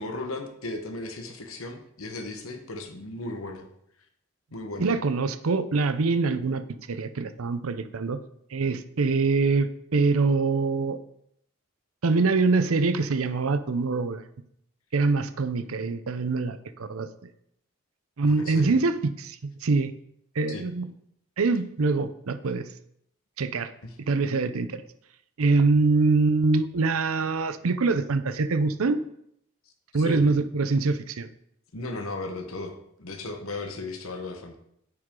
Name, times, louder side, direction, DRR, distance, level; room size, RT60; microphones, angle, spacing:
voice 1, 0.0-3.7 4.5-4.9 18.3-18.8 20.5-20.6 23.8-23.9 29.9-30.3 31.7-34.6, left 2 dB, 80° left, 4 dB, 1.2 m, -36 dB
voice 2, 4.8-8.2 8.5-11.0 12.0-14.2 14.9-17.1 18.2-19.9 20.4-20.9 21.4-22.6 23.4-23.7 24.1-24.8 25.4-29.0 29.9-31.3, right 3 dB, 85° right, 12 dB, 0.6 m, -24 dB
9.5 x 7.9 x 3.8 m, 0.73 s
head